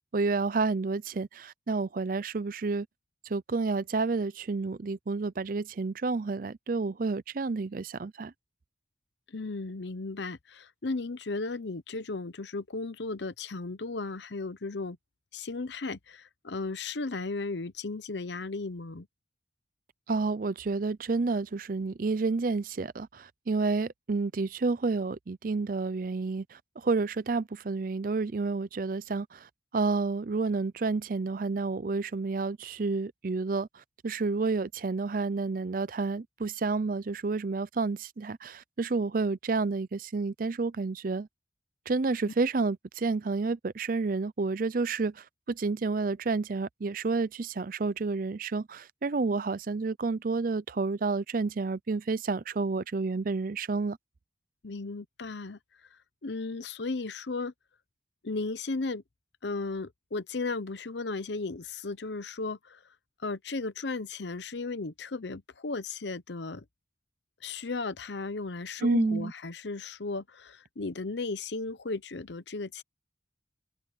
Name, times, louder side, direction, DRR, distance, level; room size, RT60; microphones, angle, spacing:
voice 1, 0.1-2.9 3.2-8.3 20.1-29.5 29.7-41.3 41.9-54.0 68.8-69.3, right 3 dB, 50° right, 0.5 m, -30 dB
voice 2, 9.3-15.0 15.3-19.1 54.6-55.6 56.2-57.5 58.2-59.0 59.4-62.8 63.2-66.6 67.4-72.8, left 3 dB, 75° left, 0.8 m, -35 dB
head